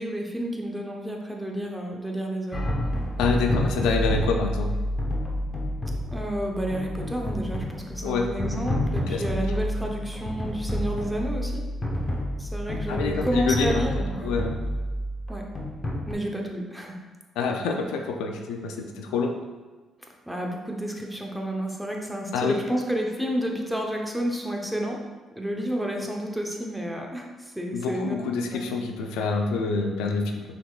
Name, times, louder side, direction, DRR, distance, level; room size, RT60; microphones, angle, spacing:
voice 1, 0.0-2.7 6.1-11.6 12.4-14.4 15.3-15.4 16.1-17.0 20.0-25.0 25.4-28.2 28.5-28.7, right 1 dB, 5° right, 0 dB, 0.9 m, -30 dB
sound 1, 2.5-16.1, equal, 25° left, 1.0 m, -29 dB
voice 2, 3.2-4.7 8.0-8.3 9.1-9.2 12.9-13.8 14.2-14.5 17.4-19.3 22.3-22.6 27.7-30.4, left 4 dB, 85° left, 3 dB, 0.5 m, -27 dB
5.9 x 3.7 x 2.4 m, 1.3 s
supercardioid pair, 70°, 0 cm